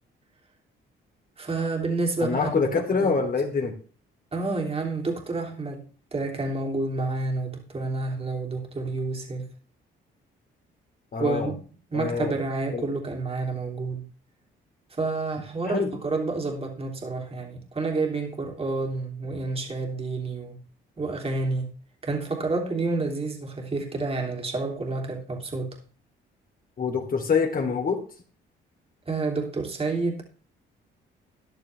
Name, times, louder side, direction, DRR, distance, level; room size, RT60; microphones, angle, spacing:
voice 1, 1.4-2.6 2.9-3.1 4.3-9.5 11.2-11.5 11.9-14.0 14.9-20.6 21.0-21.7 22.0-25.8 29.1-30.2, right 3 dB, 30° right, 3.2 m, -29 dB
voice 2, 2.2-3.7 11.1-11.5 11.9-12.4 12.7-12.9 15.7-15.9 26.8-28.0, left 5 dB, 45° left, 3.3 m, -25 dB
13.5 x 10.5 x 3.5 m
cardioid pair, 90°, 20 cm